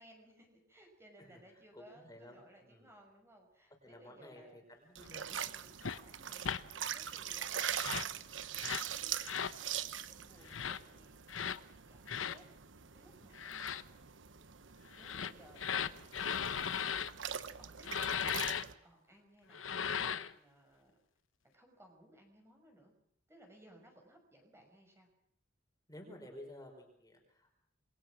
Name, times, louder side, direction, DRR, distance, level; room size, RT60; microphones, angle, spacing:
voice 1, 0.0-4.6 5.3-12.5 12.9-13.8 14.9-16.8 17.3-18.1 18.4-21.0 21.4-22.9 23.3-25.1, right 1 dB, 15° right, 2 dB, 6.1 m, -62 dB
voice 2, 1.2-2.9 3.8-5.4 25.9-27.6, left 1 dB, 20° left, 3 dB, 5.1 m, -54 dB
sound 1, 5.0-18.7, right 9 dB, 70° right, 1.1 m, -43 dB
sound 2, 5.8-6.0 6.4-6.6 7.7-8.1 8.6-8.9 9.2-9.6 10.5-10.8 11.3-11.6 12.1-12.4 13.3-13.8 14.9-17.1 17.8-18.6 19.5-20.3, left 7 dB, 90° left, 1.0 m, -37 dB
27.5 x 22.5 x 6.2 m, 0.69 s
head